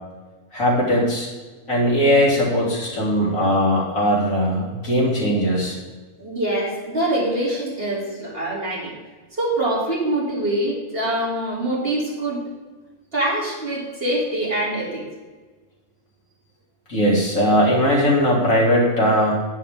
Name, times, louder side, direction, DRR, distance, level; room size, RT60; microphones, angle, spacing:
voice 1, 0.5-1.3 1.7-5.8 16.9-19.3, equal, 85° left, -4 dB, 3.4 m, -19 dB
voice 2, 6.2-8.9 9.3-12.4 13.1-15.0, right 1 dB, 45° right, -4 dB, 3.2 m, -24 dB
10.5 x 9.7 x 3.6 m, 1.3 s
omnidirectional pair, 1.4 m